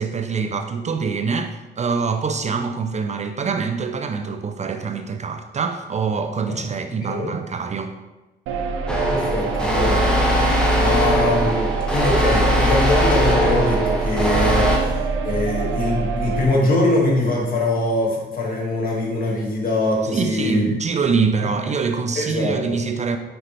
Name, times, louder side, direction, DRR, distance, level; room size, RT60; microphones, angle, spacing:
voice 1, 0.0-7.9 20.1-23.2, right 5 dB, 35° right, 6 dB, 0.4 m, -24 dB
sound 1, 8.5-16.5, right 4 dB, 85° right, 0.7 m, -25 dB
sound 2, 8.9-14.8, equal, 5° left, 1.3 m, -20 dB
voice 2, 9.1-10.1 10.8-20.7 21.6-21.7 22.2-22.8, left 2 dB, 45° left, -3 dB, 2.0 m, -23 dB
6.0 x 5.4 x 3.3 m, 1.1 s
cardioid pair, 90°, 20 cm